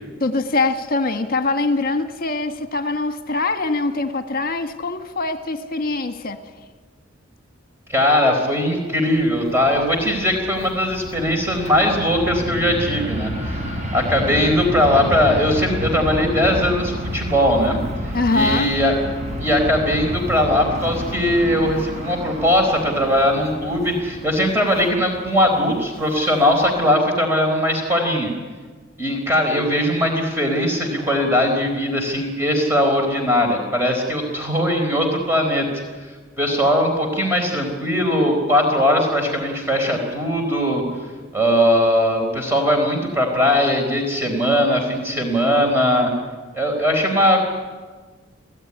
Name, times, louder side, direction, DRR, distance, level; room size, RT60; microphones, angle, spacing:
voice 1, 0.2-6.4 18.1-18.7, left 3 dB, 50° left, 1.5 m, -23 dB
voice 2, 7.9-18.9 19.4-28.3 29.0-36.1 36.4-40.8 41.3-46.1 46.5-47.4, equal, 10° right, 4.2 m, -20 dB
Fixed-wing aircraft airplane, 9.1-26.9, equal, 35° right, 5.1 m, -30 dB
30.0 x 17.0 x 9.8 m
head